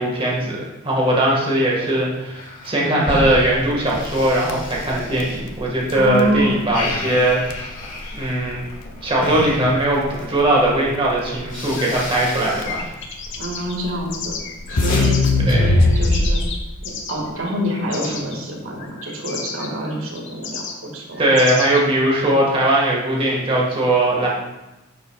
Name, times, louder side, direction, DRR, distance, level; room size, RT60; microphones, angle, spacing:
voice 1, 0.0-7.7 8.1-8.6 9.0-12.9 15.5-16.0 21.2-24.3, right 1 dB, 25° right, -3 dB, 1.7 m, -19 dB
sound 1, 2.3-6.0 6.3-10.4 11.0-11.1 11.4-12.8 13.1-13.7 14.1-15.0, left 2 dB, 45° left, 1.9 m, -32 dB
Crackle, 3.1-16.6, left 2 dB, 90° left, 0.8 m, -23 dB
voice 2, 5.9-6.5 13.4-14.3 14.7-15.2 15.5-16.4 16.8-21.2, equal, 70° right, -1 dB, 2.0 m, -26 dB
sound 2, 11.7-15.3 15.7-17.3 17.9-18.4 18.8-21.8, left 5 dB, 60° left, 1.2 m, -32 dB
10.5 x 8.1 x 2.4 m, 1.0 s
head